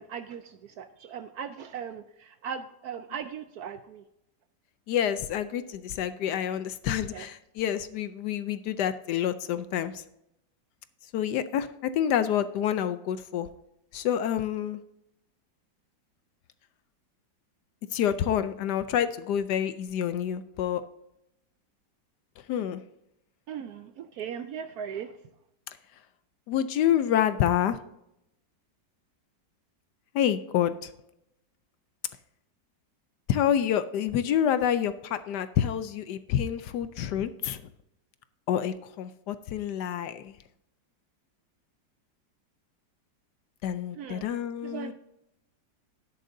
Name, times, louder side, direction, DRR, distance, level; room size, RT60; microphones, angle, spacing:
voice 1, 0.0-4.0 7.1-7.3 23.5-25.1 44.0-44.2 44.6-44.9, right 7 dB, 70° right, 9 dB, 0.9 m, -38 dB
voice 2, 4.9-10.0 11.1-13.5 13.9-14.8 17.9-20.8 22.5-22.8 26.5-27.8 30.1-30.9 33.3-37.7 38.5-40.4 43.6-44.9, left 10 dB, 70° left, 12 dB, 1.1 m, -28 dB
12.5 x 10.0 x 2.6 m, 0.82 s
omnidirectional pair, 2.0 m